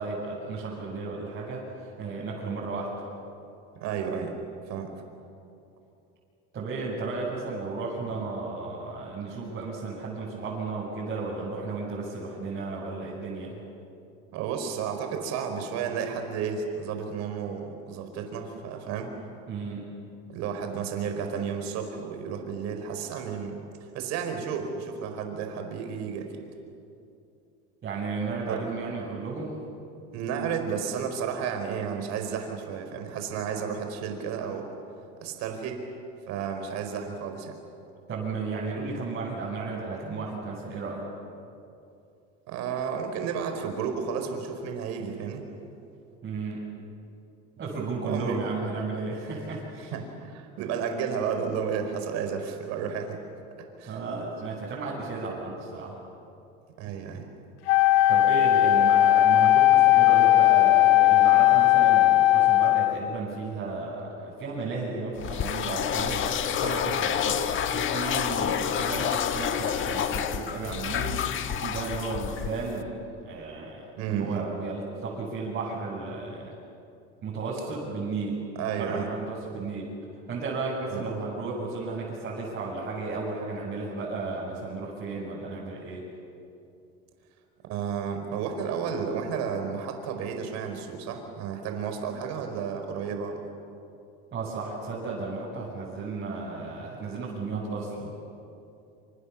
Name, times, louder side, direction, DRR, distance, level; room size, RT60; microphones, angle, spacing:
voice 1, 0.0-3.0 6.5-13.6 19.5-19.9 27.8-29.6 38.1-41.0 46.2-46.7 47.6-49.9 53.9-56.0 58.1-66.2 66.5-67.5 67.7-71.2 71.5-73.0 73.2-76.6 77.2-78.4 78.8-79.9 80.3-86.0 94.3-98.1, right 3 dB, 35° right, -7 dB, 7.5 m, -34 dB
voice 2, 3.8-4.4 4.7-4.9 14.3-19.1 20.3-23.6 23.9-26.4 28.5-28.7 30.1-34.7 35.2-35.8 36.3-37.6 42.5-45.4 48.0-48.4 49.9-53.2 53.6-54.0 56.8-57.3 74.0-74.4 78.6-79.1 80.9-81.0 87.7-93.5, right 6 dB, 65° right, 5 dB, 4.8 m, -32 dB
Wind instrument woodwind instrument, 57.7-63.1, left 15 dB, 85° left, 1.7 m, -18 dB
sound 1, 65.2-72.8, left 9 dB, 45° left, 1.5 m, -29 dB
27.0 x 26.5 x 7.3 m, 2.6 s
supercardioid pair, 120°, 29 cm